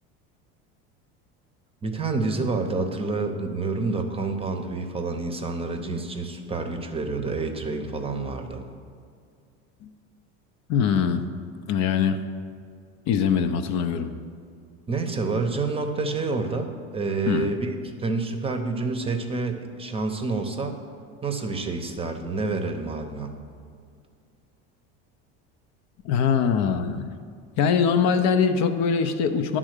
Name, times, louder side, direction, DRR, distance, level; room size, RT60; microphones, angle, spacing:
voice 1, 1.8-8.6 14.9-20.8 21.2-23.3, right 3 dB, 20° right, 5 dB, 0.7 m, -28 dB
voice 2, 10.7-11.2 11.7-12.2 13.1-14.1 17.3-17.5 26.0-27.1 27.6-29.6, left 6 dB, 55° left, 8 dB, 0.6 m, -22 dB
10.0 x 3.7 x 6.5 m, 2.2 s
supercardioid pair, 110°, 32 cm